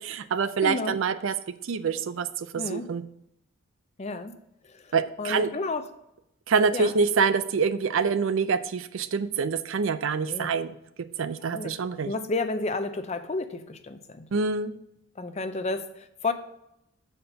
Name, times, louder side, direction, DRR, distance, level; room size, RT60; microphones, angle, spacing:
voice 1, 0.1-1.3 1.6-3.0 4.9-5.5 6.5-10.7 11.2-12.1 14.3-14.7, right 5 dB, 65° right, 12 dB, 0.4 m, -26 dB
voice 2, 0.6-1.0 2.5-2.9 4.0-4.3 4.6-4.9 5.2-5.9 6.7-6.9 10.2-10.5 11.5-11.8 12.0-14.3 15.2-16.3, left 3 dB, 30° left, 10 dB, 0.5 m, -31 dB
6.7 x 4.3 x 5.5 m, 0.79 s
head